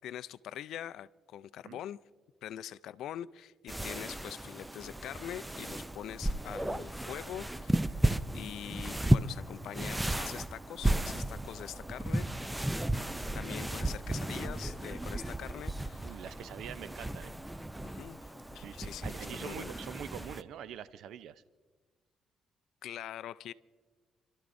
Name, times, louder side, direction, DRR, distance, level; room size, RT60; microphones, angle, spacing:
voice 1, 0.0-2.0 2.4-8.0 8.3-12.3 13.3-16.2 17.8-19.7 22.8-23.5, left 11 dB, 80° left, 0.3 m, -44 dB
sound 1, 3.7-20.4, right 1 dB, 10° right, 0.5 m, -34 dB
voice 2, 16.0-17.3 18.6-21.4, right 9 dB, 80° right, 0.5 m, -44 dB
29.5 x 12.5 x 2.6 m
cardioid pair, 90°, 0 cm